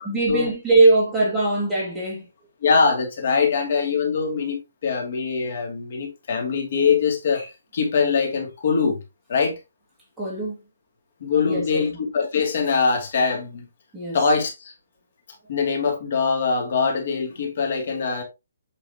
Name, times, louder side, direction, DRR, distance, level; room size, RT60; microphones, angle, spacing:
voice 1, 0.0-2.2 10.2-10.6 11.4-11.8 13.9-14.2, right 2 dB, 5° right, 2.4 m, -21 dB
voice 2, 2.6-9.0 9.3-9.5 11.2-13.7 14.1-14.7 15.5-18.2, left 5 dB, 45° left, 2.7 m, -23 dB
8.4 x 5.8 x 3.0 m
hypercardioid pair, 170°, 0 cm